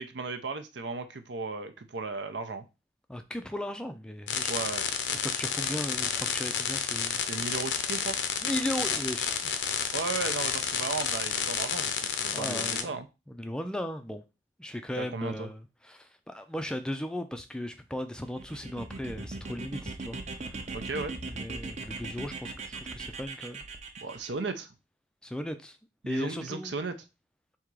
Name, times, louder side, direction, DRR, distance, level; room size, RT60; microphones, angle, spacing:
voice 1, 0.0-2.7 4.5-4.9 7.3-8.2 9.9-13.1 15.0-15.5 20.7-21.1 24.0-24.7 26.0-26.9, right 4 dB, 85° right, 0.7 m, -35 dB
voice 2, 3.1-4.6 5.1-7.2 8.4-9.6 12.3-13.0 13.3-14.2 14.6-20.7 21.3-23.6 25.2-25.8 26.1-26.7, left 1 dB, 5° left, 0.3 m, -37 dB
sound 1, 4.3-12.8, left 7 dB, 85° left, 0.6 m, -30 dB
sound 2, 18.2-24.3, right 3 dB, 40° right, 0.6 m, -39 dB
3.6 x 2.8 x 4.6 m
head